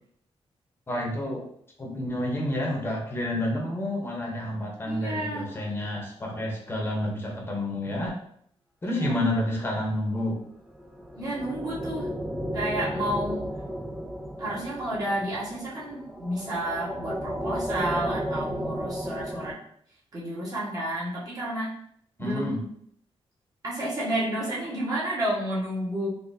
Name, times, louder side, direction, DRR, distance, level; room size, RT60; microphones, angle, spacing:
voice 1, 0.9-1.4 1.8-8.2 8.8-10.4 22.2-22.6, left 1 dB, 20° left, -1 dB, 1.0 m, -29 dB
voice 2, 4.8-5.5 8.8-9.2 11.1-12.1 12.5-13.5 14.4-19.6 20.1-21.7 22.2-22.7 23.6-26.1, right 1 dB, 35° right, -7 dB, 1.5 m, -31 dB
sound 1, 10.7-19.5, equal, 5° right, 0.3 m, -34 dB
4.1 x 2.8 x 2.7 m, 0.66 s
wide cardioid pair, 130°, 10 cm